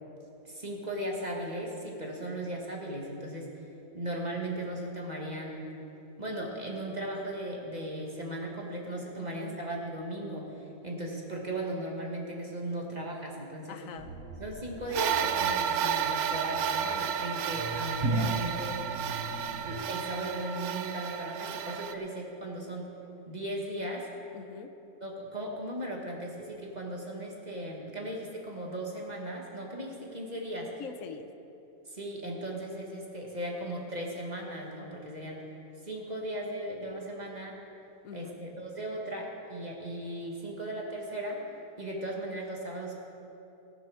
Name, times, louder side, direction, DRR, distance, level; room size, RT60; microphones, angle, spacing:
voice 1, 0.4-3.7 3.9-5.7 6.2-13.8 14.4-18.9 19.6-22.9 23.3-24.1 25.0-30.7 31.8-35.4 35.8-37.6 38.1-41.5 41.8-42.9, right 1 dB, 30° right, -1 dB, 1.6 m, -37 dB
voice 2, 9.2-9.6 13.7-14.1 24.3-24.7 30.8-31.3 38.0-38.4, left 7 dB, 65° left, 9 dB, 1.1 m, -43 dB
sound 1, 14.0-19.7, right 2 dB, 55° right, 1.2 m, -36 dB
sound 2, 14.9-21.9, right 8 dB, 75° right, 1.1 m, -32 dB
18.0 x 6.8 x 6.2 m, 2.9 s
omnidirectional pair, 1.6 m